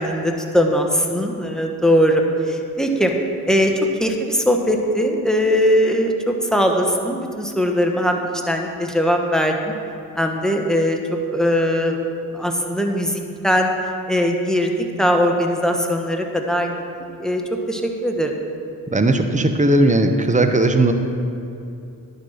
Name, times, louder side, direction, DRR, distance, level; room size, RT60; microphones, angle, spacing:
voice 1, 0.0-3.1 3.5-3.7 4.0-8.2 8.5-9.7 10.2-11.0 11.3-12.0 12.3-13.7 14.1-14.7 15.0-16.7 17.2-17.4 17.7-18.3, equal, ahead, 2 dB, 1.1 m, -20 dB
voice 2, 18.9-20.9, right 2 dB, 20° right, 6 dB, 0.8 m, -17 dB
10.5 x 4.4 x 6.5 m, 2.6 s
supercardioid pair, 50°, 41 cm